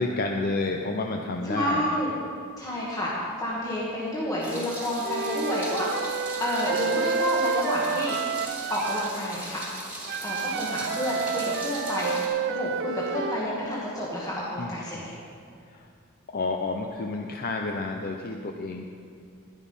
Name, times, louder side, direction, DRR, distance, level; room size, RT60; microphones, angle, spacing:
voice 1, 0.0-1.8 14.6-15.0 15.7-15.9 16.3-18.8, left 3 dB, 45° left, 2 dB, 0.6 m, -30 dB
voice 2, 1.5-2.1 2.6-5.9 6.4-8.2 8.7-9.6 10.2-15.2, left 1 dB, 15° left, -7 dB, 1.5 m, -29 dB
Meow, 4.4-12.3, right 1 dB, 5° right, 2.3 m, -39 dB
Wind instrument woodwind instrument, 5.0-9.1 10.1-13.4, right 6 dB, 50° right, 0.4 m, -29 dB
11.0 x 10.5 x 5.4 m, 2.3 s
head